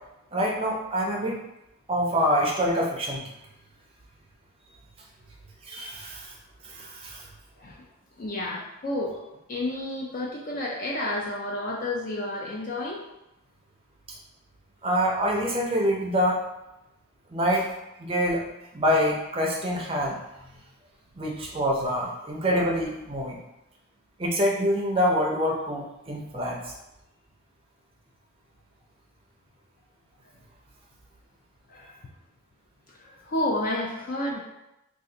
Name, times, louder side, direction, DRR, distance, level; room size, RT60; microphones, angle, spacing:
voice 1, 0.3-1.4 1.9-3.2 5.6-6.3 6.6-7.3 14.8-16.4 17.3-17.7 18.0-18.5 18.7-20.2 21.2-23.4 24.2-26.7, equal, 25° right, -2 dB, 0.5 m, -26 dB
voice 2, 8.2-9.2 9.5-13.0 31.7-32.0 32.9-34.4, left 1 dB, 40° left, -3 dB, 0.4 m, -30 dB
2.7 x 2.4 x 3.7 m, 0.91 s
head